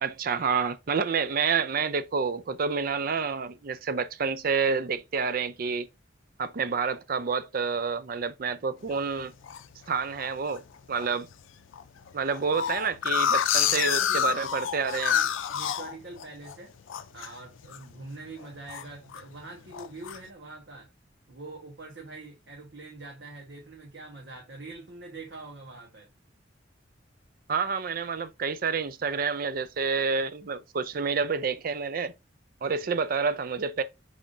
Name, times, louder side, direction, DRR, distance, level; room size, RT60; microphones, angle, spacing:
voice 1, 0.0-5.9 6.4-9.3 9.9-11.3 12.1-15.2 27.5-32.1 32.6-33.8, right 5 dB, 50° right, 0.4 m, -28 dB
sound 1, 8.9-9.6 10.2-10.6 11.0-11.1 11.3-11.4 11.7-16.5 16.9-17.3 17.6-18.0 18.3-19.2 19.7-20.2, left 9 dB, 90° left, 0.4 m, -28 dB
voice 2, 13.6-14.4 15.1-16.7 17.1-20.9 21.3-26.1 32.6-32.8, right 2 dB, 65° right, 1.1 m, -44 dB
5.3 x 3.5 x 2.5 m
head